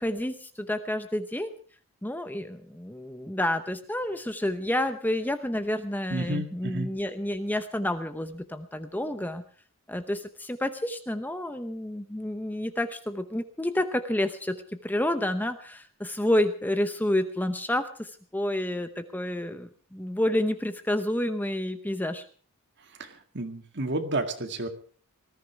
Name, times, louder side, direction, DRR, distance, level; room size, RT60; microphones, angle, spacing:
voice 1, 0.0-1.6 2.0-9.4 9.9-22.2, left 1 dB, 10° left, 10 dB, 0.8 m, -29 dB
voice 2, 6.1-6.9 23.0-24.7, right 2 dB, 50° right, 7 dB, 2.0 m, -31 dB
19.5 x 14.0 x 4.7 m, 0.42 s
head